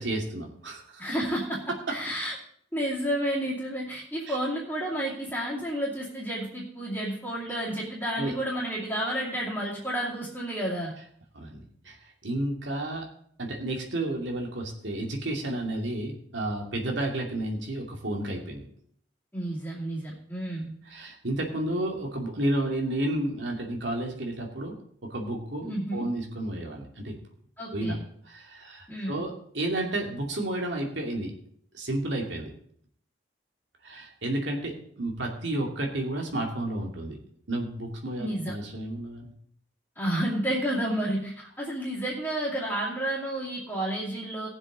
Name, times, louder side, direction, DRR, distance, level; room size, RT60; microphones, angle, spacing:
voice 1, 0.0-1.0 1.9-2.0 4.3-4.4 8.2-8.3 11.3-12.0 12.2-13.0 13.4-18.7 20.9-24.7 25.1-27.2 27.7-28.0 28.3-31.3 31.7-32.5 33.8-37.2 37.5-39.3, right 1 dB, 75° right, 1 dB, 2.4 m, -31 dB
voice 2, 1.0-2.3 2.7-10.9 19.3-20.7 25.6-26.1 27.6-28.0 28.9-29.2 38.2-38.5 40.0-44.5, right 1 dB, 10° left, -9 dB, 2.5 m, -31 dB
18.5 x 7.4 x 3.9 m, 0.65 s
head